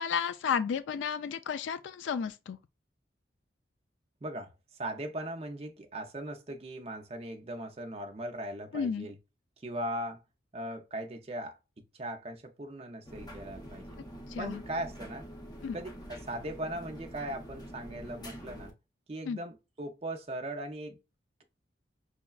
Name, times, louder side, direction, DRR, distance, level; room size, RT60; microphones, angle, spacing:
voice 1, 0.0-2.6 8.7-9.1 14.3-14.6 15.6-15.8 19.3-19.4, left 6 dB, 80° left, 0.3 m, -32 dB
voice 2, 4.2-9.2 9.6-10.2 10.5-14.0 14.4-15.3 15.7-18.7 19.1-21.0, right 1 dB, 35° right, 0.5 m, -39 dB
sound 1, 13.1-18.7, equal, 20° left, 0.7 m, -46 dB
6.2 x 2.2 x 2.3 m
head